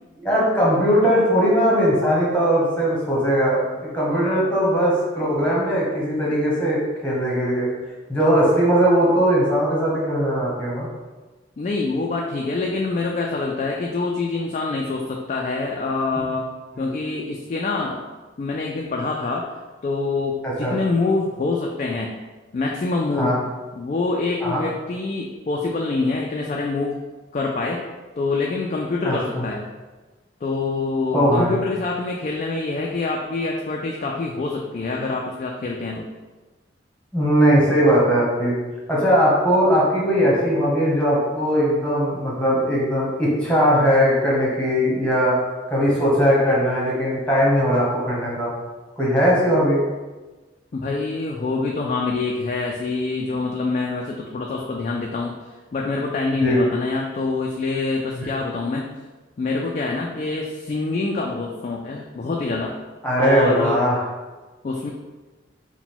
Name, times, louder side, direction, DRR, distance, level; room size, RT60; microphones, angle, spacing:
voice 1, 0.2-7.7 8.1-10.9 16.7-16.8 20.4-20.7 23.1-23.4 24.4-24.7 29.0-29.4 31.1-31.6 37.1-38.5 38.9-45.4 45.7-48.5 49.0-49.8 56.4-56.6 58.2-58.3 63.0-64.0, equal, 5° left, -6 dB, 1.1 m, -19 dB
voice 2, 11.6-16.5 16.8-18.0 18.4-19.5 19.8-22.2 22.5-23.4 23.8-27.0 27.3-27.9 28.2-29.7 30.4-36.1 50.7-55.3 55.7-58.9 59.4-62.7 63.2-63.8 64.6-64.9, left 3 dB, 40° left, 0 dB, 0.3 m, -25 dB
4.7 x 2.2 x 3.6 m, 1.2 s
head